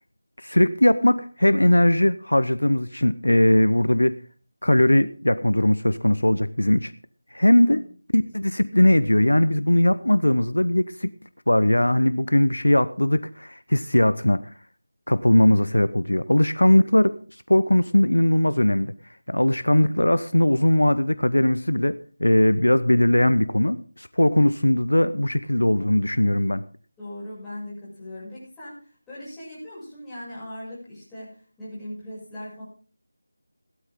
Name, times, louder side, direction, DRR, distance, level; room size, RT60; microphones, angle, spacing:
voice 1, 0.4-4.1 4.6-6.9 7.3-7.8 8.1-11.1 11.5-14.4 15.1-17.2 17.5-18.9 19.3-21.9 22.2-26.6, left 1 dB, 80° left, 15 dB, 0.9 m, -19 dB
voice 2, 27.0-28.8 29.1-32.6, left 1 dB, 5° left, -10 dB, 7.0 m, -39 dB
16.0 x 12.5 x 3.8 m, 0.38 s
figure-of-eight pair, 165°, 0 cm